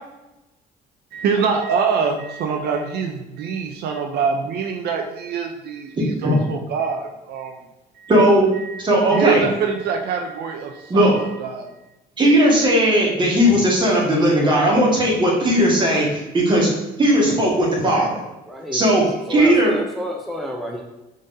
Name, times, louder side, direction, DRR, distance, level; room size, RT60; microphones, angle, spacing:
voice 1, 1.1-7.6 7.9-8.1 8.6-8.8 9.1-11.1 11.4-11.7, right 5 dB, 70° right, 3 dB, 0.5 m, -24 dB
voice 2, 8.1-8.5 8.8-9.4 10.9-11.2 12.2-16.7 17.0-18.1 18.7-19.0 19.3-19.7, equal, 30° right, -3 dB, 1.5 m, -17 dB
voice 3, 18.5-18.8 19.1-20.8, equal, ahead, 0 dB, 0.5 m, -30 dB
5.1 x 3.8 x 2.6 m, 0.99 s
cardioid pair, 110°, 17 cm